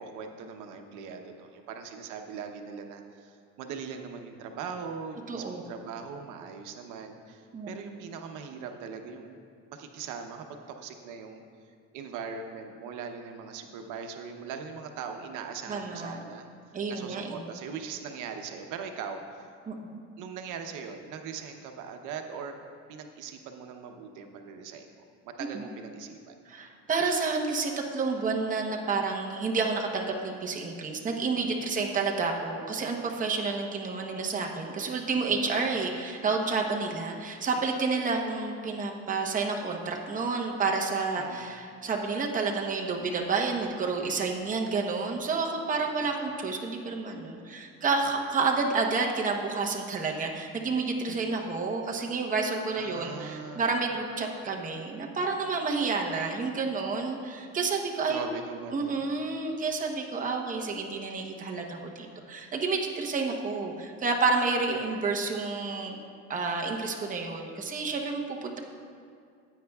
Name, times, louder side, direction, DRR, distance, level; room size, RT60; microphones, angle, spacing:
voice 1, 0.0-9.4 9.7-11.4 11.9-16.4 16.9-19.5 20.2-22.6 22.9-24.9 25.2-26.3 31.6-31.8 35.3-35.6 41.2-41.5 45.9-46.1 51.0-51.3 52.7-53.8 58.1-59.1, right 6 dB, 85° right, 5 dB, 0.8 m, -40 dB
voice 2, 5.3-5.6 7.5-7.7 15.7-16.2 16.7-17.4 19.7-20.0 25.5-25.7 26.5-58.2 58.7-66.0 66.3-68.6, right 4 dB, 25° right, 1 dB, 0.9 m, -30 dB
15.0 x 9.0 x 2.3 m, 2.2 s
cardioid pair, 135°, 30 cm